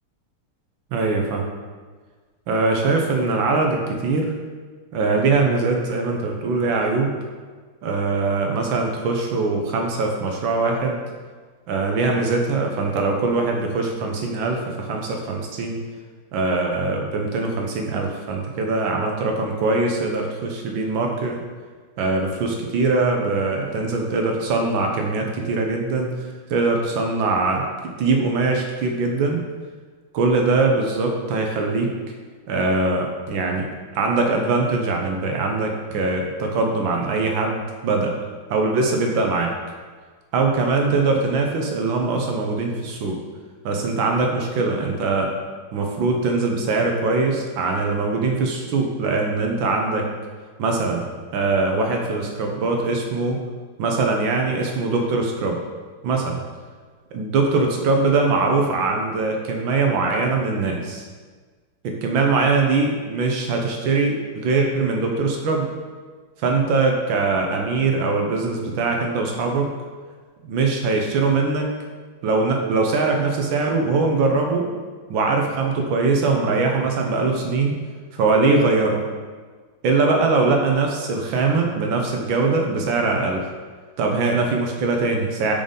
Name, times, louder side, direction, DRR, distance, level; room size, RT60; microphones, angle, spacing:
voice 1, 0.9-1.4 2.5-4.3 4.9-7.1 7.8-11.0 11.7-15.8 16.3-21.4 22.0-26.1 26.5-29.4 30.1-31.9 32.5-33.7 33.9-38.1 38.5-39.5 40.3-43.2 43.6-45.3 45.7-50.1 50.6-51.1 51.3-53.4 53.8-55.6 56.0-56.4 57.1-61.0 62.0-65.7 66.4-69.7 70.4-71.7 72.2-74.7 75.1-77.8 78.1-79.0 79.8-83.4 84.0-85.5, right 3 dB, 70° right, 2 dB, 1.3 m, -22 dB
5.3 x 3.8 x 5.1 m, 1.5 s
omnidirectional pair, 2.4 m